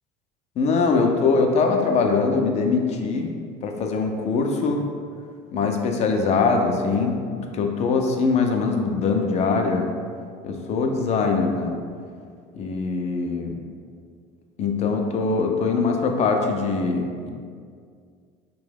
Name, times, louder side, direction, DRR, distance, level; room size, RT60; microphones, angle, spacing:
voice 1, 0.6-3.3 3.6-4.9 5.5-9.9 10.4-11.8 12.5-13.6 14.6-17.3, left 4 dB, 40° left, 3 dB, 0.4 m, -22 dB
2.9 x 2.2 x 3.3 m, 2.1 s
supercardioid pair, 95°, 17 cm